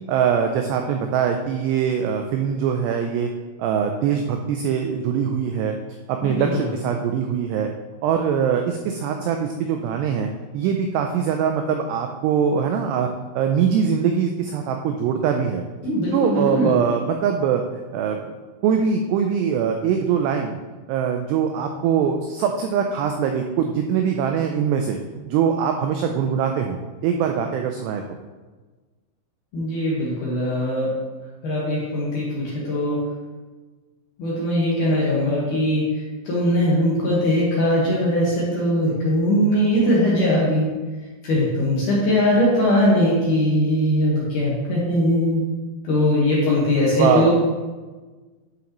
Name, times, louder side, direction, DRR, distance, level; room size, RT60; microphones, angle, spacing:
voice 1, 0.1-3.3 3.6-5.7 6.1-7.7 8.0-10.3 10.5-13.1 13.4-15.6 16.1-17.6 17.9-18.3 18.6-20.5 20.9-25.0 25.3-26.8 27.0-28.0 47.0-47.3, right 7 dB, 85° right, 4 dB, 2.4 m, -22 dB
voice 2, 6.2-6.7 15.8-16.8 29.5-30.9 31.4-33.0 34.2-35.9 36.3-40.7 41.2-45.4 45.8-47.3, left 1 dB, 60° left, -6 dB, 2.2 m, -20 dB
11.0 x 5.9 x 3.0 m, 1.3 s
omnidirectional pair, 5.4 m